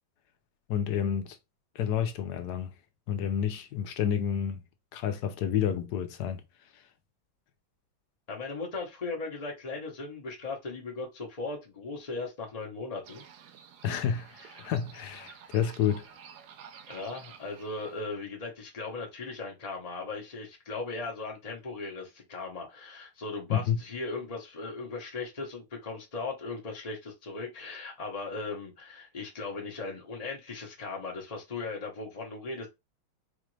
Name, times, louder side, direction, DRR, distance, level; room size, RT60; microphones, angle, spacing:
voice 1, 0.7-1.4 1.7-2.7 3.1-4.6 4.9-6.4 6.7-6.8 13.8-14.3 14.6-16.1 23.5-23.8, left 8 dB, 70° left, 1.0 m, -29 dB
voice 2, 8.3-13.2 14.5-14.6 15.3-15.5 16.9-32.7, left 3 dB, 35° left, 0.6 m, -38 dB
sound 1, 13.0-18.0, right 7 dB, 65° right, 1.1 m, -51 dB
4.9 x 2.5 x 3.1 m
omnidirectional pair, 2.2 m